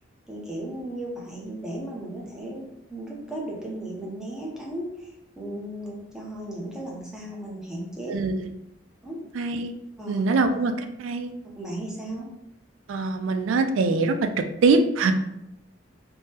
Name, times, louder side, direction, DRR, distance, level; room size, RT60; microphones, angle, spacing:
voice 1, 0.3-2.6 2.9-8.1 9.0-9.2 10.0-10.2 11.6-12.3, right 1 dB, 5° right, -4 dB, 0.6 m, -35 dB
voice 2, 8.1-8.5 9.3-9.7 10.1-11.3 12.9-15.1, right 3 dB, 85° right, 7 dB, 0.3 m, -23 dB
3.6 x 2.0 x 2.8 m, 0.84 s
head